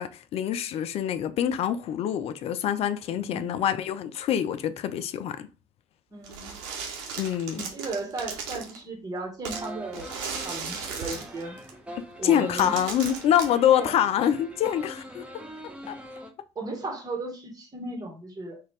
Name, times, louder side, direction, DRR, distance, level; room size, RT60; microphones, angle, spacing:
voice 1, 0.0-5.5 7.2-7.7 12.2-15.3 15.9-16.0, left 10 dB, 40° left, 0.4 m, -25 dB
voice 2, 3.1-3.5 6.1-6.6 7.5-10.2 10.4-11.6 12.2-12.7 13.6-14.0 16.5-18.6, right 2 dB, 25° right, 1.4 m, -35 dB
sound 1, 6.2-8.8 9.4-11.7 12.3-12.4 12.6-13.4, right 5 dB, 65° right, 1.0 m, -36 dB
sound 2, 9.5-16.3, equal, 5° right, 0.9 m, -43 dB
3.9 x 2.5 x 3.2 m
figure-of-eight pair, 55°, 15 cm